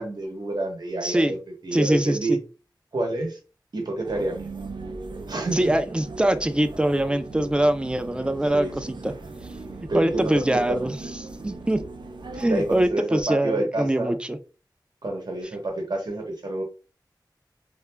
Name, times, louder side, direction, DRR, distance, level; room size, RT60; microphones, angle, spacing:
voice 1, 0.0-1.4 1.6-2.4 2.9-3.4 3.7-4.4 5.3-5.7 8.5-8.9 9.9-10.9 12.4-14.1 15.0-16.6, right 2 dB, 65° right, 2 dB, 0.8 m, -28 dB
voice 2, 1.0-1.3 1.7-2.4 5.5-9.1 9.9-11.0 11.4-11.8 12.4-14.4, right 1 dB, 15° right, 10 dB, 0.3 m, -23 dB
sound 1, 4.0-12.9, right 3 dB, 90° right, 0.4 m, -38 dB
2.3 x 2.1 x 3.2 m, 0.33 s
wide cardioid pair, 60°, 8 cm